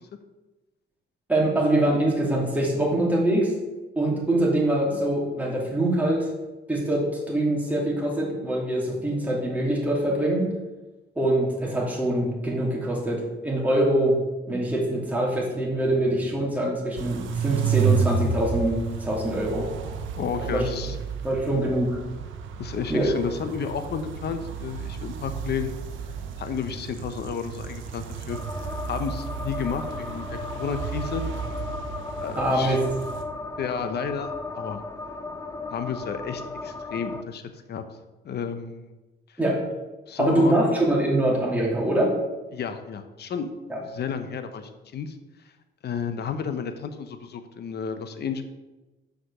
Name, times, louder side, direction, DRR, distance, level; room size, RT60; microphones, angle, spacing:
voice 1, 1.3-3.5 4.0-6.3 6.7-10.5 11.2-14.2 14.5-19.7 20.4-20.7 21.2-22.0 22.9-23.1 32.4-32.8 39.4-39.6 40.2-42.2 43.7-43.8, right 1 dB, 10° right, -3 dB, 2.6 m, -24 dB
sound 1, 17.0-33.2, right 6 dB, 80° right, 0.9 m, -31 dB
voice 2, 20.2-21.0 22.6-25.7 26.4-28.4 28.8-31.2 32.2-32.8 33.6-34.8 35.7-37.4 37.7-37.8 38.2-38.9 39.3-39.4 40.1-40.6 42.5-43.5 43.8-45.2 45.8-48.4, left 6 dB, 55° left, 9 dB, 0.9 m, -32 dB
sound 2, 28.3-37.2, left 3 dB, 15° left, 0.6 m, -36 dB
6.2 x 5.1 x 6.6 m, 1.1 s
cardioid pair, 90°, 20 cm